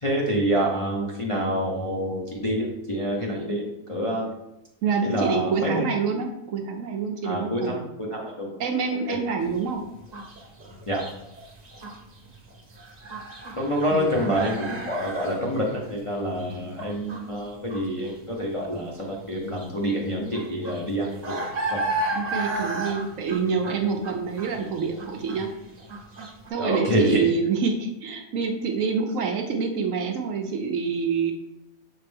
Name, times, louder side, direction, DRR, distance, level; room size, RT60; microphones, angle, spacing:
voice 1, 0.0-4.3 5.0-5.8 7.2-8.5 9.1-9.2 10.9-11.0 13.5-21.8 26.6-27.2, equal, 30° left, -3 dB, 0.7 m, -27 dB
voice 2, 4.8-7.8 8.6-9.8 13.9-14.1 22.1-25.5 26.5-31.3, right 5 dB, 65° right, 3 dB, 1.0 m, -26 dB
sound 1, 9.4-26.5, right 2 dB, 30° right, 0.9 m, -34 dB
6.6 x 4.4 x 3.4 m, 0.88 s
omnidirectional pair, 1.6 m